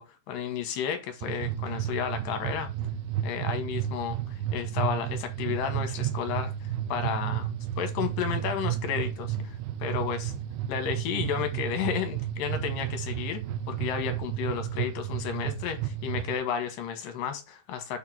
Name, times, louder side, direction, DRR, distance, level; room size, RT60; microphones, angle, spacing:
voice 1, 0.0-2.7 3.2-7.5 7.8-10.3 10.7-13.4 13.7-18.0, left 8 dB, 75° left, 2.7 m, -32 dB
sound 1, 1.2-16.4, right 11 dB, 85° right, 2.6 m, -32 dB
6.7 x 3.7 x 6.0 m
omnidirectional pair, 4.2 m